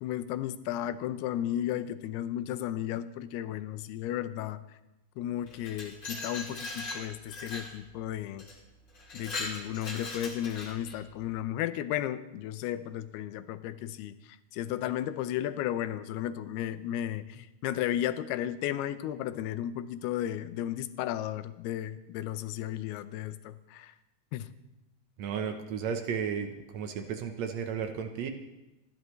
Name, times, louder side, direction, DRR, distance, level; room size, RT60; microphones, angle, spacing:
voice 1, 0.0-4.6 5.2-8.5 9.1-14.2 14.5-23.9 24.3-24.5, left 12 dB, 90° left, 12 dB, 2.7 m, -34 dB
Glass, 5.5-7.7 8.4-8.5 8.9-11.0, left 2 dB, 30° left, 2.8 m, -39 dB
voice 2, 25.2-28.3, right 7 dB, 75° right, 6 dB, 1.6 m, -34 dB
29.5 x 11.5 x 3.2 m, 1.0 s
omnidirectional pair, 4.5 m